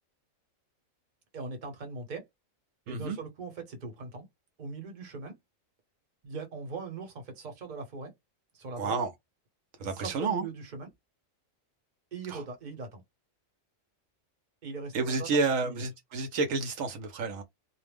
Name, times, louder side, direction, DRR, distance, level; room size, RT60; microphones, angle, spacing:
voice 1, 1.3-2.2 2.9-4.3 4.6-5.3 6.2-8.1 8.5-9.0 9.8-10.9 12.1-13.0 14.6-15.8, right 4 dB, 40° right, 0.9 m, -40 dB
voice 2, 2.9-3.2 8.8-9.1 9.8-10.4 12.3-12.4 14.9-17.4, right 4 dB, 75° right, 0.9 m, -30 dB
2.4 x 2.0 x 3.3 m
omnidirectional pair, 1.4 m